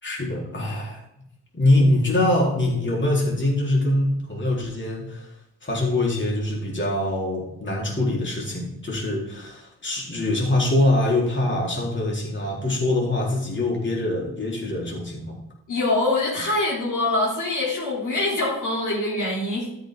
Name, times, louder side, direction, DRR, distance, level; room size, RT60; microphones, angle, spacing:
voice 1, 0.0-1.0 1.5-5.3 5.6-15.4, left 1 dB, 25° left, -2 dB, 3.8 m, -23 dB
voice 2, 15.7-19.7, left 2 dB, 50° left, -6 dB, 3.3 m, -24 dB
12.5 x 5.9 x 3.8 m, 0.83 s
hypercardioid pair, 40°, 41 cm